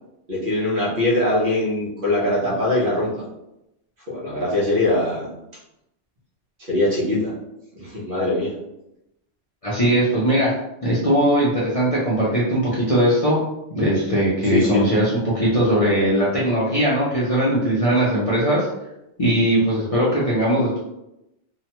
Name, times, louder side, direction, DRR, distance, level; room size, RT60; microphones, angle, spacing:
voice 1, 0.3-3.2 4.1-5.3 6.6-7.3 7.8-8.5 14.5-14.8, left 2 dB, 50° right, -6 dB, 1.0 m, -22 dB
voice 2, 9.6-10.5 10.8-13.4 13.7-18.7 19.2-20.8, right 1 dB, 40° left, -8 dB, 0.6 m, -19 dB
2.8 x 2.2 x 2.9 m, 0.87 s
omnidirectional pair, 1.2 m